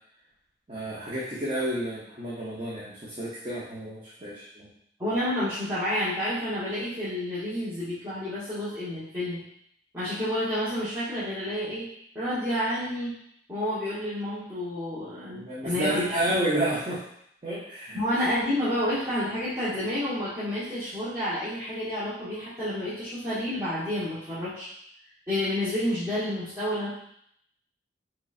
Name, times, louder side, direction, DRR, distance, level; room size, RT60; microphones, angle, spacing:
voice 1, 0.7-4.7 15.3-17.0 17.4-18.0, right 1 dB, 30° right, -8 dB, 0.7 m, -30 dB
voice 2, 5.0-9.4 9.9-11.9 12.1-13.1 13.5-16.2 17.9-24.7 25.3-26.9, left 1 dB, 15° right, -14 dB, 1.0 m, -29 dB
3.8 x 3.1 x 2.4 m, 0.71 s
head